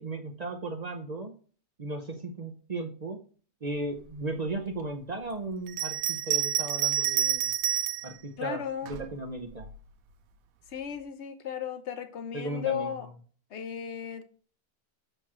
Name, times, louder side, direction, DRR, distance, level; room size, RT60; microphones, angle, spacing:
voice 1, 0.0-1.3 1.8-3.2 3.6-7.5 8.0-9.7 12.3-12.9, right 2 dB, 40° right, 0.6 m, -36 dB
Bell, 5.7-8.1 8.9-9.8, right 10 dB, 70° right, 1.0 m, -28 dB
voice 2, 8.4-8.9 10.7-13.1 13.5-14.2, left 8 dB, 50° left, 1.1 m, -35 dB
8.0 x 3.0 x 6.1 m
omnidirectional pair, 1.6 m